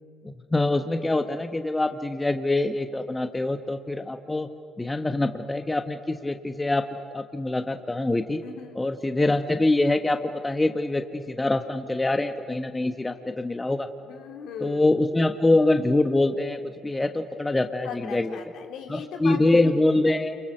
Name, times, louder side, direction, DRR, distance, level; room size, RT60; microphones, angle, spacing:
voice 1, 0.2-4.5 4.8-8.4 8.7-13.9 14.6-18.4 18.9-20.4, left 2 dB, 15° left, 8 dB, 1.2 m, -24 dB
voice 2, 8.4-8.9 14.1-14.8 17.8-19.8, left 7 dB, 65° left, 4 dB, 2.5 m, -39 dB
28.5 x 23.5 x 6.7 m, 2.3 s
hypercardioid pair, 55°, 0 cm